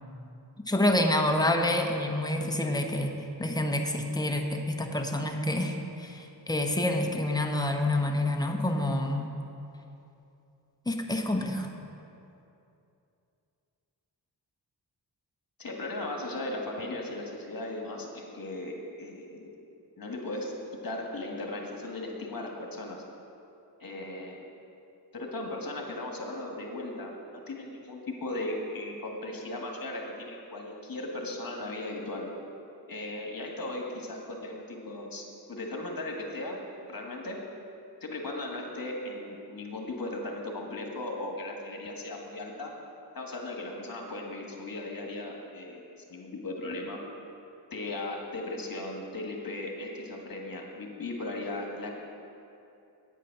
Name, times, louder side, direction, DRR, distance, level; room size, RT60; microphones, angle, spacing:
voice 1, 0.7-9.3 10.9-11.7, left 1 dB, 10° left, 3 dB, 1.0 m, -28 dB
voice 2, 15.6-19.5 20.0-20.5 20.8-23.0 23.8-24.4 25.1-32.3 32.9-36.6 36.9-37.4 38.0-42.7 43.1-45.8 46.1-47.0 47.7-51.9, left 2 dB, 50° left, 0 dB, 1.7 m, -37 dB
9.1 x 8.3 x 5.9 m, 2.7 s
cardioid pair, 70°, 43 cm